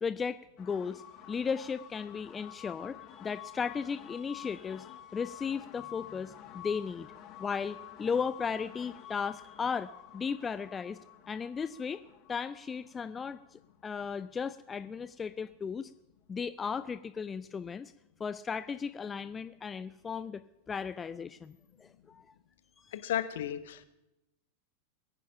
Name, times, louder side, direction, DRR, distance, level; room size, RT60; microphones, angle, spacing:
voice 1, 0.0-7.1 7.4-11.0 11.3-12.0 12.3-15.9 16.3-17.9 18.2-20.4 20.7-22.3 22.8-23.0, left 6 dB, 20° left, 14 dB, 0.5 m, -36 dB
sound 1, 0.6-14.2, left 12 dB, 35° left, 1.8 m, -50 dB
voice 2, 22.9-23.8, left 11 dB, 60° left, 12 dB, 1.1 m, -34 dB
21.5 x 9.9 x 5.7 m, 0.92 s
figure-of-eight pair, 90°, 0 cm